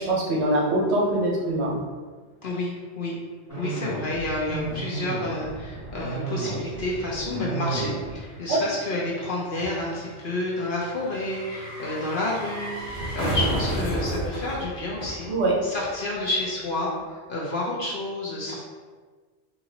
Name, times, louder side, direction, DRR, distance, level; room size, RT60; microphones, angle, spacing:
voice 1, 0.0-1.8 4.5-4.6 8.5-8.6 15.3-15.5, right 1 dB, 65° right, -4 dB, 1.1 m, -23 dB
voice 2, 2.4-3.1 3.6-15.3 15.6-18.6, left 2 dB, 55° left, -5 dB, 0.8 m, -30 dB
sound 1, 3.5-8.4, right 3 dB, 25° left, 1.7 m, -33 dB
sound 2, 5.5-15.9 16.2-16.3, right 1 dB, 75° left, 1.2 m, -33 dB
4.0 x 2.8 x 2.8 m, 1.5 s
omnidirectional pair, 1.2 m